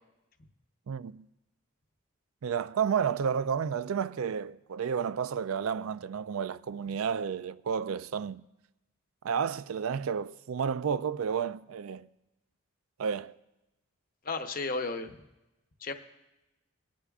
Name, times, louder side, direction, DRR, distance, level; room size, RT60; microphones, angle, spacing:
voice 1, 0.9-1.3 2.4-8.4 9.2-12.1 13.0-13.4, right 7 dB, 80° right, 0.4 m, -31 dB
voice 2, 14.2-15.1 15.8-15.9, left 3 dB, 40° left, 0.8 m, -33 dB
23.0 x 10.0 x 2.4 m
head